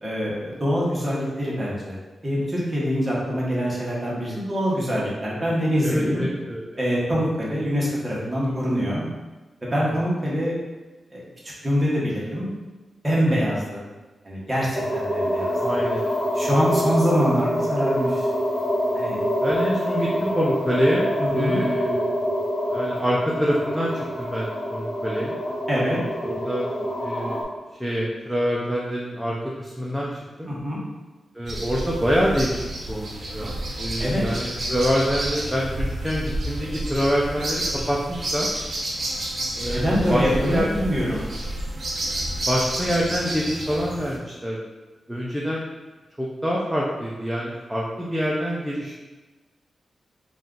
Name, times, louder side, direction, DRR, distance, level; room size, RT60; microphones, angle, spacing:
voice 1, 0.0-2.0 2.2-6.2 6.8-9.0 9.6-10.5 11.1-11.2 11.6-12.5 13.0-13.8 14.2-15.8 16.3-18.3 18.9-19.2 21.2-21.6 25.7-26.0 30.5-30.8 34.0-34.2 39.7-41.3, equal, 20° right, -6 dB, 1.2 m, -24 dB
voice 2, 5.8-6.8 8.4-8.9 9.8-10.0 13.3-13.4 15.6-16.1 19.4-21.1 21.3-22.1 22.7-25.4 26.2-26.7 27.0-27.4 27.8-30.5 31.3-32.6 32.9-38.5 39.6-40.7 42.5-44.6 45.1-45.7 46.2-49.0, equal, 5° right, -5 dB, 0.5 m, -26 dB
sound 1, 14.7-27.4, equal, 20° left, 1.2 m, -26 dB
sound 2, 31.5-44.2, right 1 dB, 50° right, 0.8 m, -30 dB
4.1 x 2.4 x 3.8 m, 1.2 s
wide cardioid pair, 130°, 0 cm